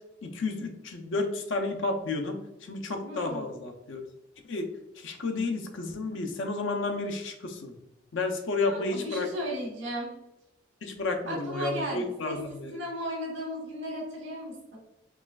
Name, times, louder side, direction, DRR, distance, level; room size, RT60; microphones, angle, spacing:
voice 1, 0.2-4.0 4.5-4.7 5.0-7.7 8.1-9.3 10.8-12.8, left 3 dB, 85° left, 4 dB, 0.6 m, -31 dB
voice 2, 3.0-3.6 8.6-10.1 11.3-12.4 12.7-14.8, equal, 80° right, -3 dB, 1.4 m, -35 dB
4.7 x 3.1 x 2.4 m, 0.88 s
head